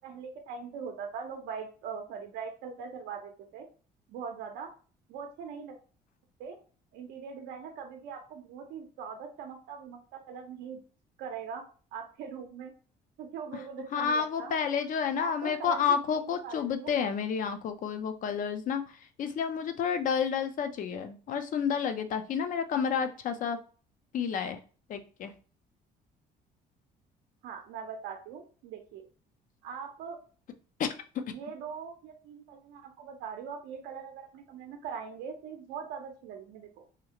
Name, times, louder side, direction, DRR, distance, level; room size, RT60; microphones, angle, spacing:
voice 1, 0.0-3.7 4.1-4.7 5.1-5.8 6.4-6.6 6.9-10.8 11.2-11.6 11.9-12.7 13.2-14.5 15.1-15.8 16.1-16.9 27.4-29.0 29.6-30.2 31.3-36.8, right 6 dB, 90° right, 3 dB, 0.6 m, -41 dB
voice 2, 13.9-18.8 19.2-23.6 24.1-24.6 24.9-25.3 30.8-31.2, left 7 dB, 50° left, 8 dB, 0.5 m, -30 dB
2.8 x 2.4 x 2.8 m, 0.38 s
cardioid pair, 110°, 17 cm